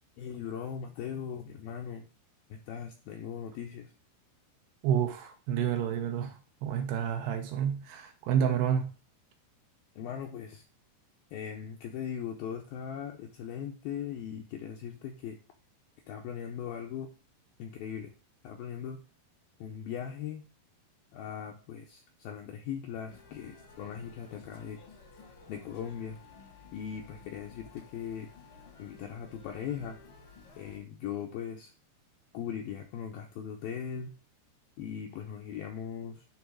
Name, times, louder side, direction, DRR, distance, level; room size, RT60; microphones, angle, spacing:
voice 1, 0.2-2.1 2.5-3.9 10.0-10.6 11.3-15.4 16.1-17.1 17.6-18.1 18.4-19.0 19.6-20.4 21.1-24.8 25.5-26.2 26.7-28.3 28.8-30.0 30.6-31.7 32.3-34.1 34.8-36.3, left 8 dB, 80° left, 2.1 m, -39 dB
voice 2, 4.8-8.9, right 8 dB, 80° right, 2.5 m, -29 dB
sound 1, 23.1-30.8, left 4 dB, 65° left, 1.3 m, -54 dB
10.5 x 3.5 x 6.2 m
omnidirectional pair, 5.1 m